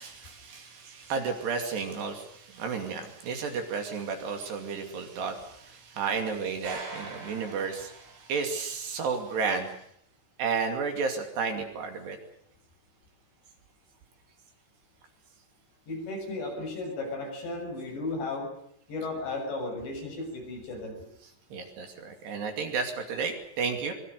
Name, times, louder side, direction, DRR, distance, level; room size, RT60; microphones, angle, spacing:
voice 1, 0.0-9.8 10.4-12.2 21.5-23.9, right 5 dB, 60° right, 5 dB, 4.4 m, -32 dB
metal drag&drop, 6.6-8.6, right 3 dB, 80° right, 10.0 m, -42 dB
voice 2, 15.9-18.5 18.9-21.1, left 2 dB, 60° left, 1 dB, 8.9 m, -35 dB
25.0 x 22.5 x 6.8 m, 0.70 s
omnidirectional pair, 5.7 m